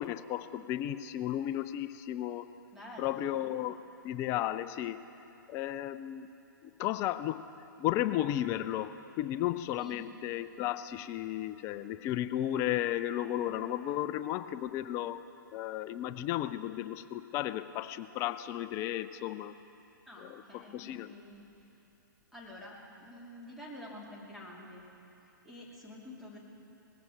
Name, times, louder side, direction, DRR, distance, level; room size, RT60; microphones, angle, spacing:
voice 1, 0.0-2.4 3.0-5.0 5.5-6.3 6.8-7.5 7.8-15.2 15.5-19.5 20.2-21.1, left 12 dB, 25° left, 13 dB, 0.4 m, -34 dB
voice 2, 2.7-3.4 9.8-10.0 20.1-21.5 22.3-24.9 25.4-26.4, left 1 dB, ahead, -6 dB, 2.8 m, -48 dB
19.5 x 15.5 x 4.7 m, 3.0 s
figure-of-eight pair, 120°, 11 cm